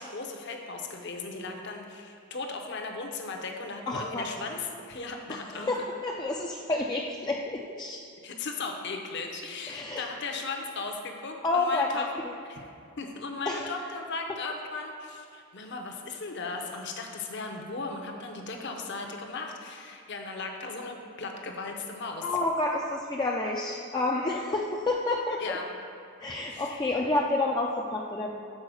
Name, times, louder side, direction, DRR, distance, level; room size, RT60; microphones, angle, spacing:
voice 1, 0.0-5.7 8.2-12.1 12.5-12.7 13.0-22.4 25.4-25.7 26.5-26.8, left 3 dB, 55° left, 2 dB, 0.7 m, -37 dB
voice 2, 3.9-4.3 5.5-8.0 9.7-10.0 11.4-12.3 13.5-13.7 22.2-25.4 26.2-28.3, left 2 dB, 20° left, -2 dB, 0.3 m, -29 dB
6.4 x 4.5 x 6.2 m, 2.5 s
head